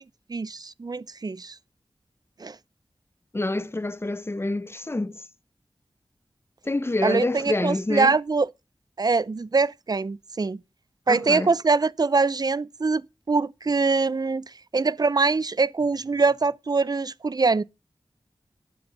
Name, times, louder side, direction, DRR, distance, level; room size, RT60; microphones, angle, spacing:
voice 1, 0.3-1.5 2.4-2.6 7.0-8.5 9.0-10.6 11.1-13.0 13.3-14.4 14.7-17.6, right 4 dB, 45° right, 0.5 m, -23 dB
voice 2, 3.3-5.2 6.6-8.2 11.1-11.5, left 2 dB, 25° left, 0.8 m, -27 dB
11.5 x 9.9 x 3.9 m
wide cardioid pair, 65°, 9 cm